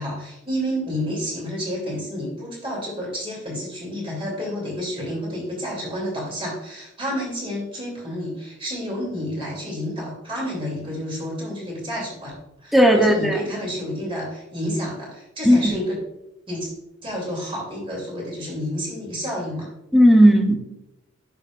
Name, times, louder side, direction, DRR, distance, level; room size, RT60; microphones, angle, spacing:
voice 1, 0.0-12.3 12.6-16.0 16.5-16.7 17.0-19.7, equal, 25° right, -3 dB, 2.9 m, -30 dB
voice 2, 12.7-13.3 15.4-15.6 19.9-20.5, equal, ahead, 2 dB, 0.9 m, -14 dB
10.5 x 5.6 x 2.5 m, 0.87 s
head